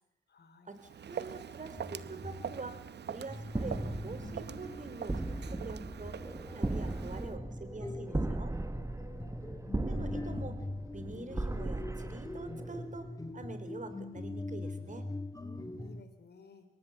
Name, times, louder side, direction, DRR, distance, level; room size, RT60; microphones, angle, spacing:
voice 1, 0.3-0.7 8.8-9.4 15.4-16.7, left 4 dB, 55° left, 8 dB, 4.3 m, -56 dB
Walk footsteps, 0.8-7.4, right 8 dB, 55° right, 0.9 m, -44 dB
voice 2, 1.0-2.8 3.1-6.2 6.6-8.5 9.8-10.6 10.9-13.1 13.3-15.1, right 3 dB, 40° right, 10 dB, 4.2 m, -45 dB
sound 1, 1.8-16.0, left 2 dB, 15° left, 1.9 m, -43 dB
sound 2, 3.5-13.0, right 2 dB, 15° right, 1.3 m, -38 dB
23.0 x 17.5 x 7.4 m, 0.83 s
supercardioid pair, 50°, 21 cm